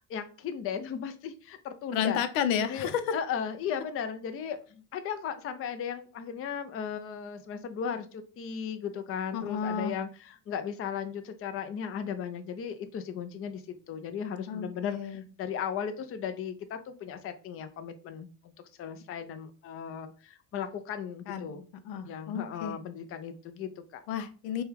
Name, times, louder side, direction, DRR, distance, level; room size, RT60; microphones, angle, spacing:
voice 1, 0.0-2.2 2.7-13.6 13.9-18.5 18.8-21.7 22.1-24.0, left 7 dB, 30° left, 0.4 m, -36 dB
voice 2, 1.9-3.0 9.3-9.9 14.5-15.2 21.3-21.5 21.8-22.7 24.1-24.6, left 8 dB, 90° left, 0.7 m, -31 dB
4.4 x 2.3 x 3.3 m
cardioid pair, 120°, 44 cm